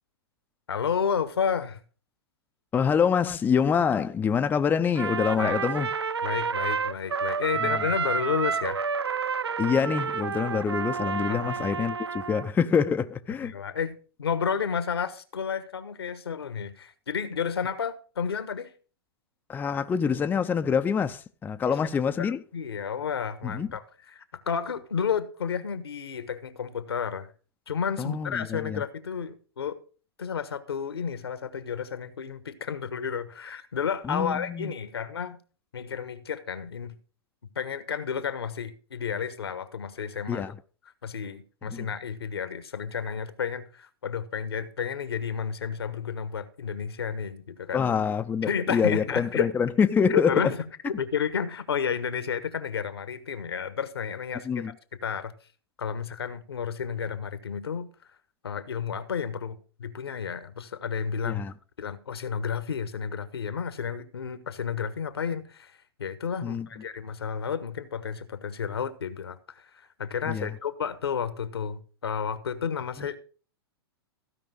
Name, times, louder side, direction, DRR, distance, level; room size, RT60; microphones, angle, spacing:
voice 1, 0.7-1.8 5.4-5.6 6.2-8.8 11.3-11.6 13.4-18.7 21.7-21.8 22.2-27.3 27.7-29.8 30.2-35.4 35.7-37.0 37.5-40.4 41.0-47.8 48.4-49.5 50.1-54.7 55.0-55.3 55.8-57.9 58.4-61.4 61.8-65.7 66.0-73.2, left 7 dB, 75° left, 1.3 m, -31 dB
voice 2, 2.7-5.9 7.6-7.8 9.6-13.5 19.5-22.4 23.4-23.7 28.0-28.8 34.0-34.7 40.3-40.6 41.7-41.9 47.7-50.5 54.4-54.7 61.2-61.5 66.4-66.7 70.3-70.5 73.0-73.1, left 6 dB, 15° left, 0.6 m, -26 dB
Trumpet, 4.9-12.5, right 5 dB, 85° right, 0.5 m, -30 dB
15.5 x 5.4 x 5.3 m
figure-of-eight pair, 105°, 13 cm